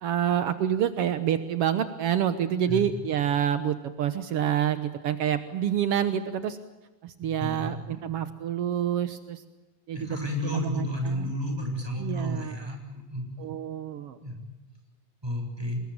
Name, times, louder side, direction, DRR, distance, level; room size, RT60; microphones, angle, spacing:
voice 1, 0.0-6.6 7.0-9.4 9.9-11.3 12.0-12.7 13.4-14.2, right 10 dB, 75° right, 11 dB, 1.4 m, -28 dB
voice 2, 7.4-8.0 9.9-12.8 13.1-13.3 14.2-14.4 15.2-15.8, equal, 5° right, 3 dB, 7.4 m, -31 dB
26.5 x 21.5 x 8.8 m, 1.1 s
omnidirectional pair, 4.2 m